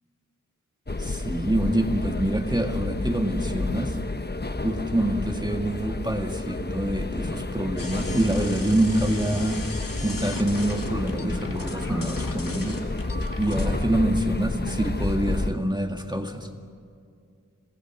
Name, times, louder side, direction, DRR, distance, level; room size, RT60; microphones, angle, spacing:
sound 1, 0.9-15.5, left 2 dB, 30° left, 1.1 m, -30 dB
voice 1, 1.0-4.0 4.6-9.6 10.0-12.8 13.4-16.5, right 1 dB, 15° right, 3 dB, 1.9 m, -26 dB
sound 2, 7.8-13.8, left 2 dB, 85° left, 2.6 m, -37 dB
27.0 x 19.5 x 6.2 m, 2.3 s
wide cardioid pair, 45°, 33 cm